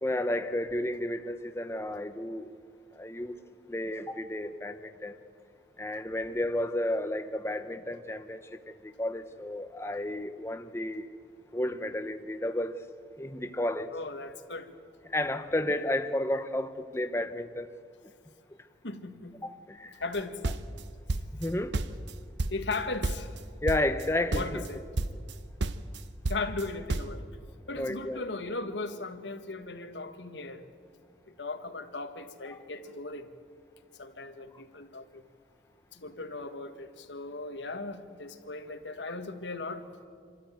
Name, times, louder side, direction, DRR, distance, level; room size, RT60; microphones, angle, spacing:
voice 1, 0.0-2.5 2.9-3.4 3.7-5.2 5.8-11.1 11.5-12.8 13.2-14.0 15.1-17.7 19.4-20.0 21.3-21.8 23.6-24.6 27.7-28.2 32.5-32.6 39.1-39.2, left 1 dB, 15° left, 8 dB, 0.7 m, -32 dB
voice 2, 13.9-14.7 18.8-19.4 20.0-20.4 22.5-23.4 24.3-24.8 26.3-27.3 27.7-30.7 31.3-33.3 34.0-35.2 35.9-39.8, left 3 dB, 85° left, 7 dB, 1.6 m, -37 dB
sound 1, 20.1-21.5 21.7-22.8 23.0-23.4 23.7-24.1 24.3-24.7 25.0-25.4 25.6-27.2, right 2 dB, 85° right, 0.8 m, -31 dB
27.0 x 13.5 x 9.2 m, 2.1 s
head